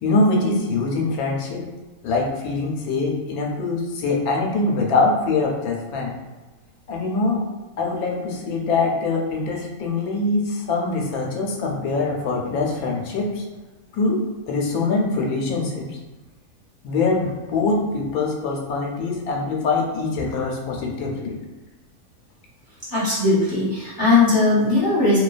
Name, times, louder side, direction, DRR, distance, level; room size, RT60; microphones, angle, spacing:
voice 1, 0.0-1.7 2.0-6.1 6.9-7.4 7.8-13.4 13.9-16.0 16.8-21.4, left 3 dB, 85° left, 0 dB, 1.1 m, -23 dB
voice 2, 22.9-25.2, left 3 dB, 15° left, -11 dB, 1.0 m, -18 dB
2.6 x 2.2 x 2.4 m, 1.2 s
omnidirectional pair, 1.5 m